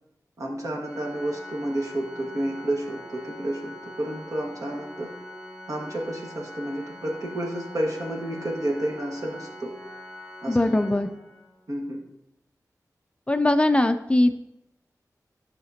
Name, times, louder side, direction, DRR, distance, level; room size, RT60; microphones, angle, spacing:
voice 1, 0.4-5.1 5.7-9.7 10.4-10.8 11.7-12.0, right 1 dB, 60° right, -1 dB, 1.6 m, -30 dB
Organ, 0.8-11.7, left 1 dB, 15° right, 1.9 m, -43 dB
voice 2, 10.5-11.1 13.3-14.3, left 1 dB, 20° left, 8 dB, 0.4 m, -21 dB
10.0 x 5.8 x 2.8 m, 0.84 s
wide cardioid pair, 90°, 7 cm